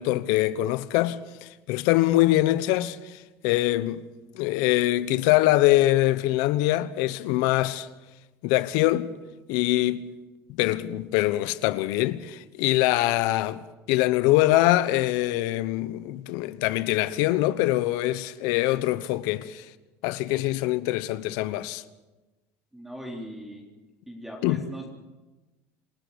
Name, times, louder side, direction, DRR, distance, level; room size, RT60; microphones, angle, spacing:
voice 1, 0.0-4.1 4.3-7.9 8.4-9.1 9.5-10.1 10.6-13.6 13.9-19.6 20.0-21.8 24.4-24.6, left 16 dB, 75° left, 1.0 m, -23 dB
voice 2, 22.7-23.7 24.1-24.9, equal, 5° right, 3.9 m, -39 dB
27.5 x 13.5 x 8.4 m
supercardioid pair, 120°, 7 cm